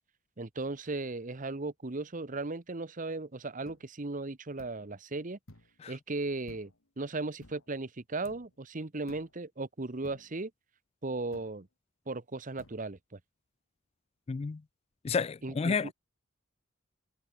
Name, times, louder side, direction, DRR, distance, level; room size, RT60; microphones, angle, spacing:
voice 1, 0.4-5.4 5.9-10.5 11.0-11.7 12.1-13.2 15.4-15.9, right 2 dB, 40° right, 1.0 m, -37 dB
sound 1, 3.6-3.8 4.6-4.8 5.5-5.8 6.5-6.9 7.4-7.7 8.2-8.5 9.1-9.4 10.0-10.4 11.3-11.6 12.6-12.8, left 1 dB, 90° left, 3.4 m, -55 dB
voice 2, 14.3-14.6 15.0-15.9, left 5 dB, 30° left, 0.3 m, -31 dB
head